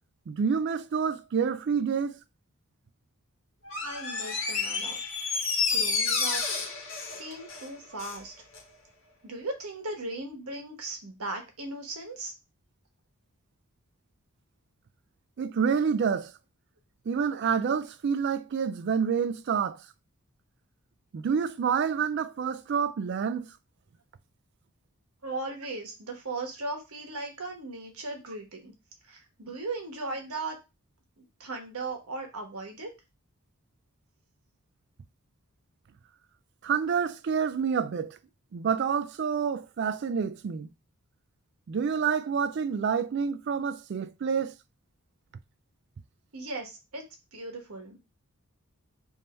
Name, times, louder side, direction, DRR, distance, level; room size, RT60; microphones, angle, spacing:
voice 1, 0.3-2.2 15.4-16.3 17.1-19.8 21.1-23.5 36.6-38.2 38.5-40.7 41.7-44.5, right 6 dB, 50° right, 0.3 m, -28 dB
Door, 3.6-8.2 8.5-8.6, left 5 dB, 60° left, 1.1 m, -30 dB
voice 2, 3.8-5.0 5.7-6.4 6.7-6.9 7.2-8.3 9.2-12.3 25.2-28.7 29.0-30.6 31.4-32.9 46.3-47.0 47.3-48.0, right 2 dB, 80° right, 1.2 m, -37 dB
3.5 x 2.7 x 4.3 m
head